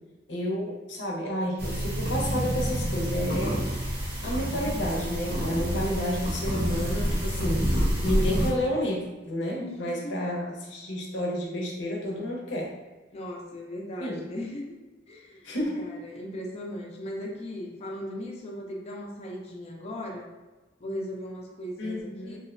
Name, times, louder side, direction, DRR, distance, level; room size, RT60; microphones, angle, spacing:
voice 1, 0.3-3.8 4.2-7.7 8.0-12.8 14.0-14.2 15.4-15.9 21.8-22.4, equal, 80° left, -2 dB, 0.6 m, -30 dB
sound 1, 1.6-8.5, equal, 55° right, 0.6 m, -28 dB
voice 2, 9.6-10.1 13.1-14.6 15.1-20.3 20.8-22.4, left 1 dB, 35° left, -1 dB, 0.4 m, -38 dB
2.6 x 2.0 x 2.4 m, 1.2 s
head